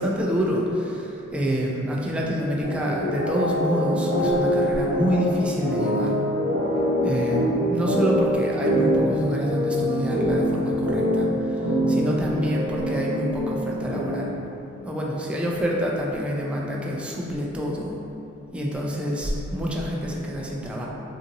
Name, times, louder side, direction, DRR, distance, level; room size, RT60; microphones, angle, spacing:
voice 1, 0.0-6.1 7.0-14.3 14.8-17.9 18.5-20.9, equal, 5° right, -3 dB, 0.4 m, -27 dB
sound 1, 2.6-14.4, equal, 85° left, 0.9 m, -24 dB
2.7 x 2.6 x 2.6 m, 2.9 s
supercardioid pair, 45°, 31 cm